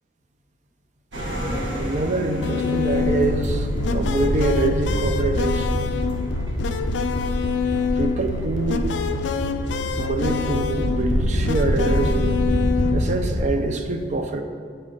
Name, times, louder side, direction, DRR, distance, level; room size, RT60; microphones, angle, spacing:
sound 1, 1.1-13.5, equal, 80° right, 1.3 m, -26 dB
voice 1, 1.8-5.7 8.0-8.9 10.0-12.3 12.9-14.4, right 3 dB, 40° right, 5 dB, 0.4 m, -25 dB
sound 2, 2.4-13.2, left 4 dB, 70° left, 0.3 m, -26 dB
8.7 x 4.2 x 3.8 m, 2.1 s
head